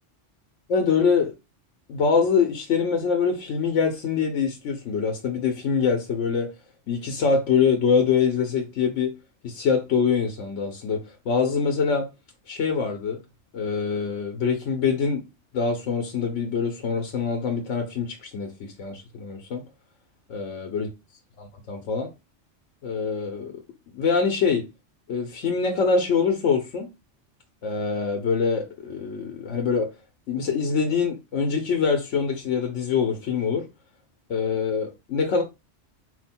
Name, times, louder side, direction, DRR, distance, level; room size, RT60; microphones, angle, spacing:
voice 1, 0.7-1.3 1.9-6.5 6.9-9.2 9.4-12.1 12.5-13.2 13.5-15.2 15.5-19.6 20.3-20.9 21.4-22.1 22.8-23.5 23.9-24.7 25.1-26.9 27.6-29.9 30.3-33.7 34.3-35.4, left 5 dB, 85° left, 1.1 m, -24 dB
4.4 x 2.2 x 4.2 m
omnidirectional pair, 1.2 m